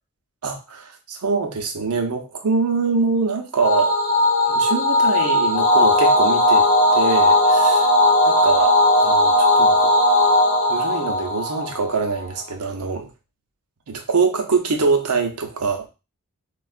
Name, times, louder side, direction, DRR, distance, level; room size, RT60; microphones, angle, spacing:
voice 1, 0.4-3.9 4.5-6.7 6.9-7.9 8.2-9.9 10.7-13.1 13.9-15.9, right 4 dB, 80° right, 0.7 m, -24 dB
sound 1, 3.6-12.2, left 1 dB, 30° left, 0.8 m, -17 dB
4.3 x 2.4 x 2.3 m
head